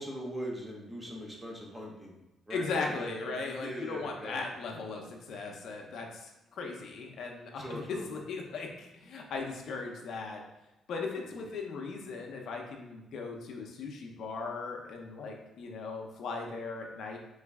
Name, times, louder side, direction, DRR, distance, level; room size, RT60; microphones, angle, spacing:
voice 1, 0.0-2.1 2.5-4.4 7.6-8.0 11.3-11.4, equal, 20° right, -1 dB, 1.0 m, -40 dB
voice 2, 2.5-10.4 10.9-17.2, left 4 dB, 70° left, 1 dB, 0.7 m, -38 dB
3.9 x 3.2 x 3.5 m, 0.98 s
cardioid pair, 90°, 0 cm